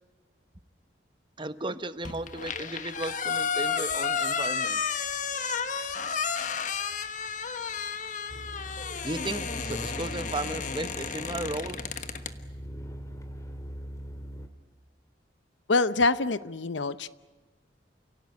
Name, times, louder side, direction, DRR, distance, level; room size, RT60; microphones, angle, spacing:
voice 1, 1.4-4.8 9.0-11.8, right 2 dB, 25° right, 12 dB, 1.0 m, -35 dB
sound 1, 2.0-12.3, left 6 dB, 45° left, 1.3 m, -32 dB
sound 2, 8.3-14.5, equal, 15° left, 2.2 m, -41 dB
voice 2, 15.7-17.1, left 3 dB, 80° left, 15 dB, 0.8 m, -25 dB
29.0 x 17.5 x 9.6 m, 1.2 s
head